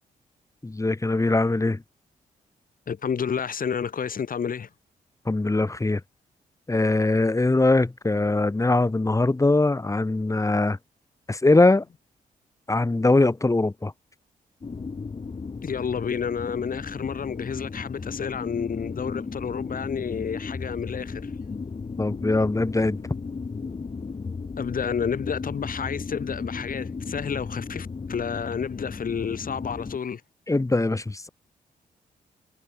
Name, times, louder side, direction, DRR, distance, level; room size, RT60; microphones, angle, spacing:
voice 1, 0.6-1.8 5.2-6.0 6.7-10.8 11.3-11.8 12.7-13.9 22.0-23.0 30.5-31.3, left 2 dB, 20° left, 1.7 m, -21 dB
voice 2, 2.9-4.7 15.6-21.3 24.6-30.2, left 7 dB, 60° left, 5.3 m, -30 dB
sound 1, 14.6-30.0, left 4 dB, 35° left, 1.6 m, -35 dB
cardioid pair, 60°, 16 cm